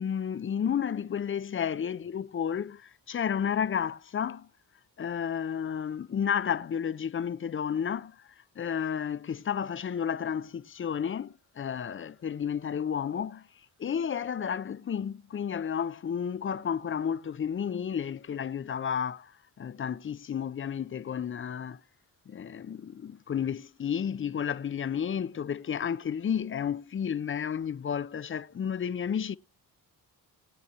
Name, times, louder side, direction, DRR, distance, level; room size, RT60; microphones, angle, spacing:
voice 1, 0.0-4.5 5.0-8.2 8.6-13.5 13.8-19.3 19.6-21.8 22.3-29.4, left 8 dB, 30° left, 0.5 m, -32 dB
21.0 x 8.7 x 2.8 m
cardioid pair, 90°, 40 cm